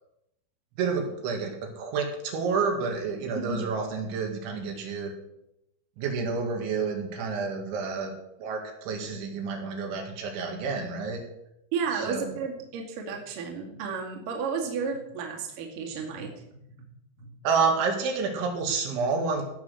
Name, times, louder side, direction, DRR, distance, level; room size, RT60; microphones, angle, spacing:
voice 1, 0.8-5.1 6.0-8.1 8.4-11.2 11.9-12.4 17.4-19.4, right 5 dB, 75° right, 2 dB, 4.2 m, -29 dB
voice 2, 3.4-3.7 11.7-16.3 17.2-17.3, right 5 dB, 50° right, 0 dB, 3.4 m, -32 dB
17.0 x 7.5 x 6.4 m, 0.83 s
omnidirectional pair, 5.4 m